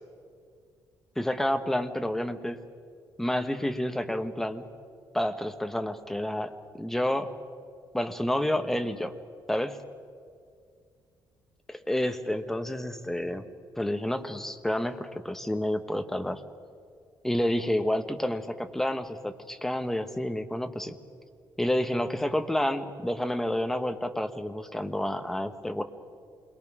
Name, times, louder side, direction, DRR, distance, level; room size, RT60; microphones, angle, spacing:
voice 1, 1.2-2.6 3.2-4.7 5.1-7.3 7.9-9.1 9.5-9.8 11.7-13.5 13.8-16.4 17.2-21.0 21.6-25.8, left 1 dB, 5° left, 8 dB, 0.9 m, -29 dB
27.5 x 22.0 x 6.0 m, 2.2 s
cardioid pair, 175°, 8 cm